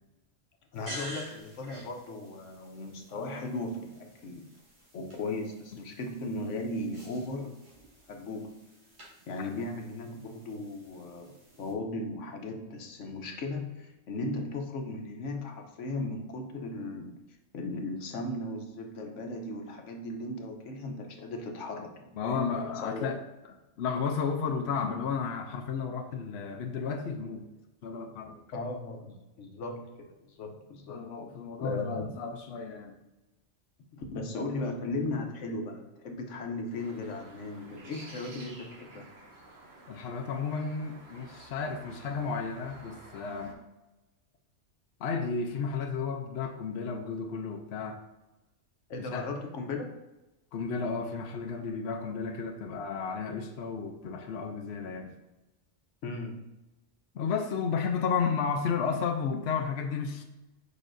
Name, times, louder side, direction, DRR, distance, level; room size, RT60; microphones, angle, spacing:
voice 1, 0.7-4.5 4.9-7.6 8.1-8.6 9.3-17.2 17.5-23.1 28.5-31.0 31.6-32.1 33.9-39.1 48.9-49.9 56.0-56.5, left 2 dB, 80° left, 3 dB, 1.2 m, -37 dB
sound 1, 0.7-11.7, equal, 40° right, 1.6 m, -50 dB
voice 2, 22.2-23.2 23.8-27.5 27.8-28.4 30.9-33.0 39.9-43.6 45.0-48.0 49.0-49.3 50.5-55.1 57.1-60.2, left 5 dB, 65° left, 4 dB, 0.9 m, -33 dB
sound 2, 36.7-43.5, right 2 dB, 60° right, 1.3 m, -51 dB
6.8 x 5.3 x 2.6 m, 1.0 s
omnidirectional pair, 1.2 m